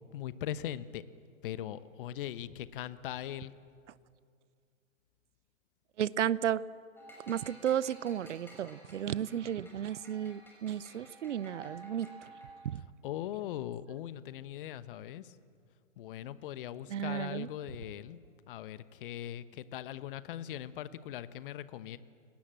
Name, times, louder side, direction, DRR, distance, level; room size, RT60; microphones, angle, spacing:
voice 1, 0.1-1.0 1.4-3.5 13.0-15.4 16.0-22.0, left 12 dB, 40° left, 15 dB, 1.1 m, -40 dB
voice 2, 6.0-6.6 7.3-12.1 12.6-12.8 16.9-17.5, right 10 dB, 60° right, 20 dB, 0.8 m, -33 dB
sound 1, 7.0-12.7, right 1 dB, 5° left, 6.1 m, -53 dB
29.5 x 19.0 x 7.6 m, 2.3 s
figure-of-eight pair, 120°, 40 cm